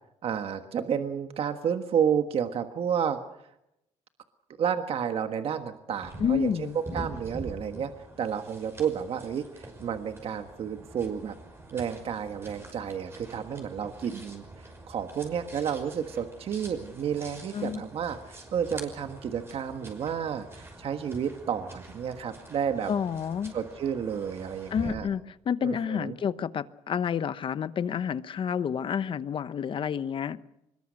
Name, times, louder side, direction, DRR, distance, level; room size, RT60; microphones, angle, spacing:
voice 1, 0.2-3.2 4.6-6.7 6.9-7.9 8.2-11.3 11.7-14.4 14.9-22.9 23.5-25.1 25.6-26.2, right 8 dB, 50° right, 7 dB, 1.5 m, -31 dB
sound 1, 6.0-24.9, right 2 dB, 20° right, 5.7 m, -45 dB
voice 2, 6.2-6.8 17.5-17.8 22.9-23.5 24.7-30.4, left 7 dB, 45° left, 14 dB, 1.0 m, -29 dB
24.5 x 21.5 x 6.5 m, 0.83 s
cardioid pair, 130°, 12 cm